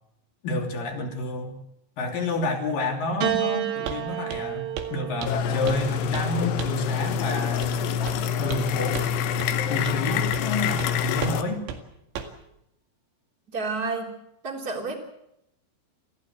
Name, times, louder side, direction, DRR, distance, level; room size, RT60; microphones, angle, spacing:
voice 1, 0.4-1.6 2.0-7.8 8.4-9.1 9.7-11.6, left 2 dB, 50° left, 2 dB, 4.5 m, -29 dB
Piano, 3.2-7.7 8.7-9.5, right 11 dB, 65° right, 2.7 m, -32 dB
Walk footsteps, 3.9-4.0 4.3-4.5 4.8-4.9 5.2-5.9 6.1-6.3 6.6-6.8 7.6-7.8 8.1-8.7 8.9-9.1 9.4-9.5 9.9-10.0 10.3-10.5 10.8-10.9 11.2-11.4 11.7-11.8 12.2-12.4, right 7 dB, 85° right, 4.3 m, -35 dB
sound 1, 5.3-11.4, left 7 dB, 75° left, 3.1 m, -26 dB
voice 2, 13.5-14.1 14.4-15.0, right 3 dB, 20° right, 2 dB, 3.4 m, -30 dB
28.5 x 15.5 x 7.9 m, 0.80 s
omnidirectional pair, 5.2 m